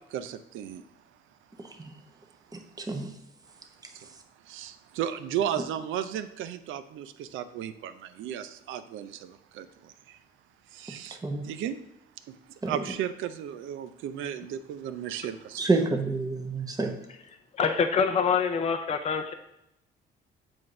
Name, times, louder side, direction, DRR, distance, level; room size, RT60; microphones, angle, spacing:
voice 1, 0.1-0.8 3.9-4.1 4.5-10.2 10.7-11.2 11.4-11.8 12.3-12.4 12.7-15.7, right 10 dB, 85° right, 11 dB, 0.5 m, -35 dB
voice 2, 2.8-3.1 11.2-11.5 12.6-12.8 15.6-17.0, right 3 dB, 20° right, 3 dB, 0.8 m, -28 dB
voice 3, 17.6-19.3, left 6 dB, 30° left, 6 dB, 0.4 m, -25 dB
7.6 x 2.6 x 4.8 m, 0.82 s
cardioid pair, 90°, 20 cm